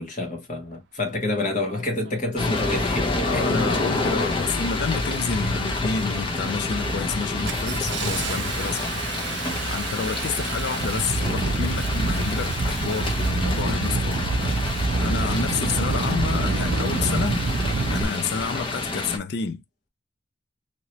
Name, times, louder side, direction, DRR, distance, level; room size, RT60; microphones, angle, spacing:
voice 1, 0.0-3.5, left 2 dB, 40° left, 1.3 m, -28 dB
Engine starting, 1.7-1.8 2.5-2.8 3.5-3.9 4.2-4.8 5.2-5.7 6.1-6.3 6.7-18.0, right 3 dB, 60° right, 0.5 m, -27 dB
sound 1, 2.4-19.2, left 2 dB, 25° left, 0.8 m, -28 dB
voice 2, 3.2-8.9 9.7-14.2 15.0-17.5 17.8-19.6, left 5 dB, 55° left, 0.4 m, -29 dB
2.9 x 2.9 x 2.8 m
head